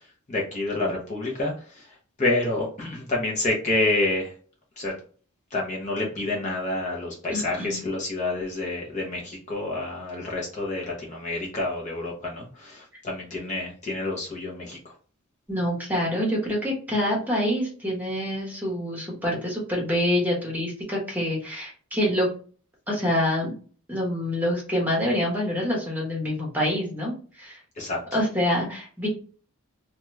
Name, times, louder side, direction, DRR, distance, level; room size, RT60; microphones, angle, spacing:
voice 1, 0.3-1.5 2.2-4.3 4.8-4.9 5.5-14.8 27.8-28.0, left 2 dB, 35° left, -2 dB, 0.7 m, -28 dB
voice 2, 7.3-7.8 15.5-22.3 22.9-23.5 23.9-27.6 28.1-29.1, left 1 dB, 10° right, -3 dB, 1.0 m, -26 dB
2.9 x 2.3 x 3.1 m, 0.41 s
head